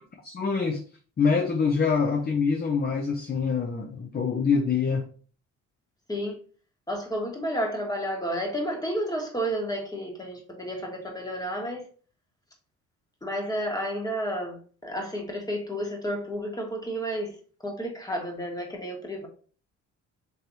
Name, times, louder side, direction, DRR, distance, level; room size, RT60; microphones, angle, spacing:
voice 1, 0.2-0.8 1.2-5.1, left 5 dB, 30° left, 0.6 m, -25 dB
voice 2, 6.9-11.8 13.2-17.3 17.6-19.3, equal, 10° left, 1.5 m, -31 dB
4.6 x 3.2 x 2.7 m
cardioid pair, 90°, 30 cm